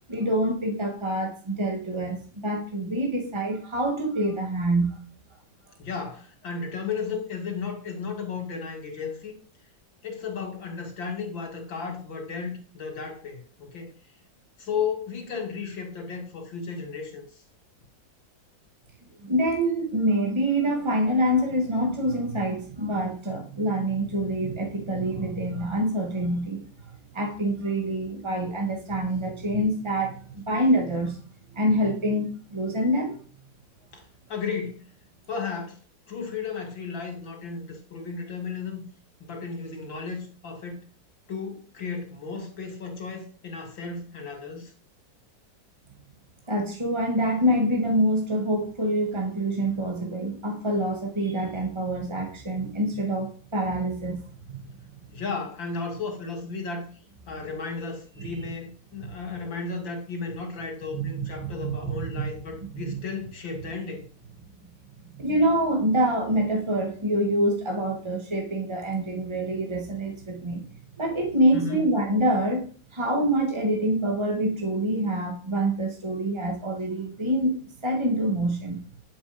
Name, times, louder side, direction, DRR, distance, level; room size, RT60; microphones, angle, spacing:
voice 1, 0.1-5.0 19.2-26.6 27.1-31.2 31.5-33.2 46.5-54.6 58.2-58.5 59.0-59.1 60.9-62.3 62.7-63.0 65.1-70.7 71.0-72.7 72.9-78.8, right 1 dB, 15° right, 2.6 m, -26 dB
voice 2, 5.8-9.3 10.0-13.9 14.6-17.2 33.9-34.0 34.3-34.9 35.3-35.8 36.1-38.8 39.2-40.8 41.3-44.7 55.1-56.9 57.3-64.0 71.5-71.8, left 5 dB, 85° left, 3.5 m, -34 dB
10.5 x 7.3 x 5.4 m
omnidirectional pair, 2.0 m